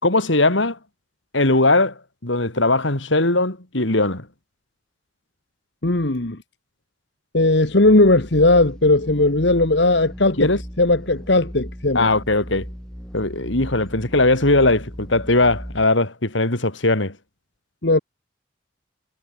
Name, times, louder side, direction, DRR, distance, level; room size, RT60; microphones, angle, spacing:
voice 1, 0.0-0.8 1.3-1.9 2.2-4.3 10.4-10.6 11.9-12.7 13.1-17.2, left 2 dB, 80° left, 3.7 m, -19 dB
voice 2, 5.8-6.4 7.3-10.5 10.8-12.1 17.8-18.0, left 2 dB, 60° left, 1.6 m, -17 dB
sound 1, 7.8-15.8, equal, 5° left, 6.0 m, -37 dB
head